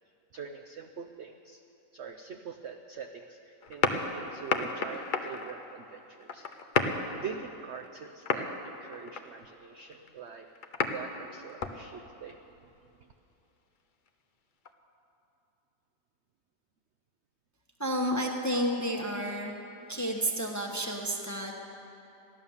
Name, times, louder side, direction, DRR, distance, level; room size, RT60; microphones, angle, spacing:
voice 1, 0.3-1.6 1.9-6.5 7.1-10.5 10.9-12.7, right 6 dB, 75° right, 4 dB, 0.6 m, -44 dB
sound 1, 3.6-5.6 6.2-7.0 7.7-8.0 8.3-8.6 8.9-9.3 9.8-11.0 11.4-11.7 12.3-12.4 14.6-14.7, left 5 dB, 75° left, 0.4 m, -30 dB
voice 2, 17.8-19.5 19.9-21.6, equal, 15° left, 1 dB, 0.7 m, -31 dB
15.0 x 11.0 x 7.1 m, 3.0 s
omnidirectional pair, 1.9 m